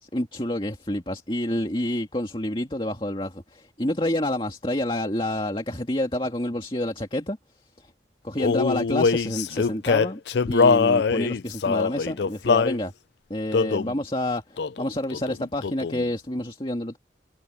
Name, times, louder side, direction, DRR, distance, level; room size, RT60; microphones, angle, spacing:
voice 1, 0.0-7.4 7.8-7.9 8.2-10.2 10.5-12.9 13.3-17.0, left 1 dB, 30° left, 2.2 m, -28 dB
Male singing, 8.4-12.8 13.5-13.9 14.6-14.9 15.1-16.1, left 5 dB, 65° left, 0.4 m, -22 dB
head